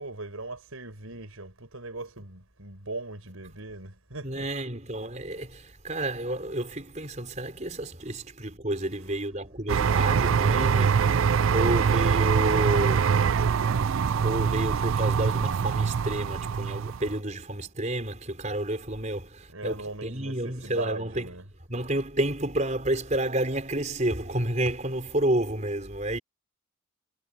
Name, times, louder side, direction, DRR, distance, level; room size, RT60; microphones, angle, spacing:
voice 1, 0.0-4.5 19.5-21.4, right 2 dB, 85° right, 6.1 m, -39 dB
voice 2, 4.2-13.2 14.2-21.3 21.7-26.2, right 1 dB, 35° right, 4.9 m, -30 dB
sound 1, 9.7-17.1, right 6 dB, 70° right, 0.4 m, -24 dB
head